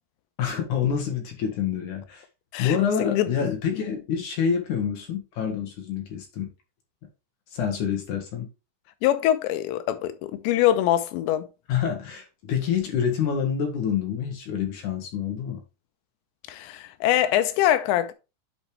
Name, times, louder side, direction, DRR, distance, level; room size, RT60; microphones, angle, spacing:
voice 1, 0.4-2.2 2.6-6.5 7.5-8.5 11.7-15.6, left 7 dB, 65° left, 2.1 m, -27 dB
voice 2, 2.5-3.5 9.0-11.5 16.5-18.1, left 12 dB, 85° left, 3.0 m, -24 dB
8.5 x 5.4 x 3.2 m
omnidirectional pair, 5.1 m